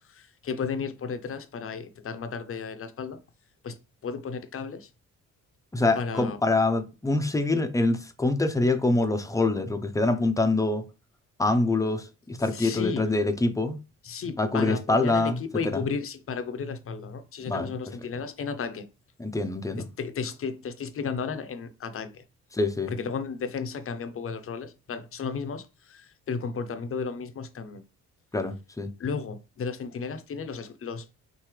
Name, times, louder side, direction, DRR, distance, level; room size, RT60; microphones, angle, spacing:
voice 1, 0.1-3.2 3.6-3.7 4.0-4.9 6.0-6.4 12.5-13.0 14.0-18.9 19.8-22.2 22.9-27.8 29.0-31.0, left 5 dB, 45° left, 0.8 m, -33 dB
voice 2, 5.7-10.8 11.4-13.8 14.4-15.8 17.4-17.7 19.2-19.9 22.5-22.9 28.3-28.9, left 2 dB, 10° left, 0.8 m, -25 dB
5.8 x 2.7 x 3.3 m
cardioid pair, 90°, 30 cm